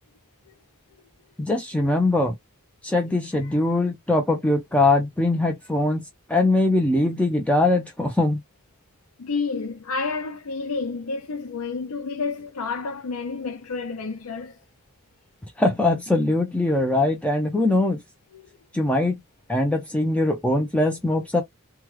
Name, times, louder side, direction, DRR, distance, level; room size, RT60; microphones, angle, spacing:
voice 1, 1.4-2.4 2.8-6.0 6.3-8.4 15.6-18.0 18.7-19.2 19.5-21.4, left 2 dB, 5° left, 0.5 m, -21 dB
voice 2, 9.2-14.6 18.3-18.4, left 4 dB, 85° left, 0.5 m, -30 dB
3.2 x 2.2 x 3.0 m
head